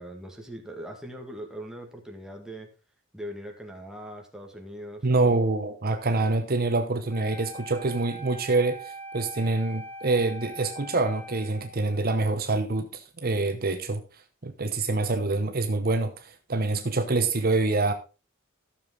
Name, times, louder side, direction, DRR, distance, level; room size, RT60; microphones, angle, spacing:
voice 1, 0.0-2.7 3.1-5.1, equal, 5° right, 1 dB, 1.9 m, -40 dB
voice 2, 5.0-17.9, right 3 dB, 45° right, 7 dB, 0.9 m, -26 dB
Wind instrument woodwind instrument, 7.1-12.2, right 1 dB, 10° left, 2.2 m, -42 dB
13.0 x 7.0 x 3.9 m, 0.32 s
head